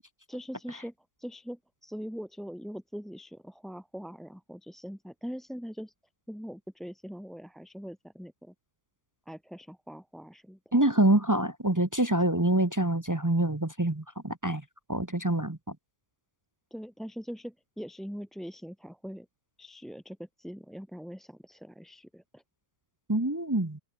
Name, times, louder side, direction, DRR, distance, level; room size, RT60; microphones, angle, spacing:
voice 1, 0.3-5.9 6.3-8.5 9.3-10.6 16.7-19.3 19.6-22.4, equal, ahead, 2.4 m, -42 dB
voice 2, 10.7-14.6 14.9-15.8 23.1-23.8, right 1 dB, 15° right, 0.7 m, -26 dB
open air
omnidirectional pair, 2.1 m